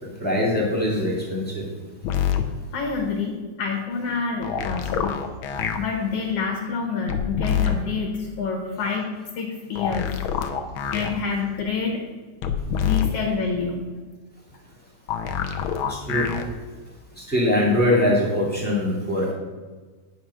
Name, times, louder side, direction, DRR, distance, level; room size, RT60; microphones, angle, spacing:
voice 1, 0.2-1.7 15.9-16.2 17.3-19.3, left 1 dB, 5° left, -5 dB, 2.1 m, -22 dB
sound 1, 2.0-2.4 4.4-5.8 7.1-7.8 9.8-11.1 12.4-13.1 15.1-16.4 17.8-17.9, left 8 dB, 85° left, 1.1 m, -25 dB
voice 2, 2.7-5.2 5.8-9.1 9.4-10.2 10.9-12.0 12.8-13.9, left 5 dB, 60° left, 1 dB, 2.0 m, -27 dB
9.5 x 6.1 x 5.6 m, 1.4 s
omnidirectional pair, 3.4 m